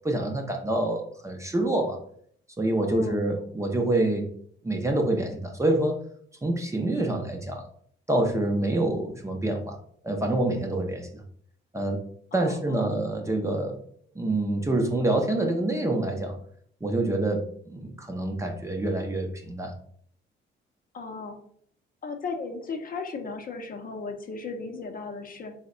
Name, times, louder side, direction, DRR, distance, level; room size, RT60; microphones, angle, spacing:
voice 1, 0.0-2.0 2.6-4.3 4.6-6.0 6.4-7.6 8.1-9.8 10.0-11.2 11.7-12.0 12.3-13.8 14.2-16.4 16.8-19.7, right 1 dB, 15° right, 3 dB, 0.5 m, -26 dB
voice 2, 2.8-3.2 12.3-12.9 13.5-13.6 20.9-21.4 22.0-25.5, left 4 dB, 45° left, 4 dB, 0.6 m, -36 dB
3.4 x 2.1 x 3.7 m, 0.62 s
cardioid pair, 90°, 20 cm